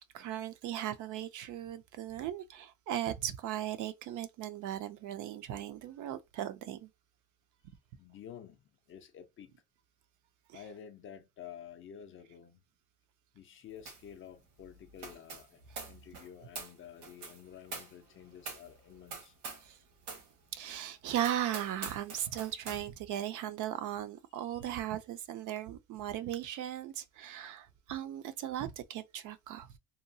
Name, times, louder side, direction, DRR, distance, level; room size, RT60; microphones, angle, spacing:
voice 1, 0.1-6.9 10.5-10.6 19.6-19.8 20.5-29.7, right 11 dB, 50° right, 0.4 m, -37 dB
voice 2, 8.0-8.6 8.9-9.5 10.5-12.6 13.3-19.4 24.4-24.7, left 9 dB, 35° left, 0.4 m, -51 dB
sound 1, 13.9-14.1 14.4-19.7 20.0-20.3 20.7-20.8 21.2-22.8, right 4 dB, 80° right, 1.3 m, -45 dB
2.8 x 2.2 x 2.6 m
cardioid pair, 125°, 40 cm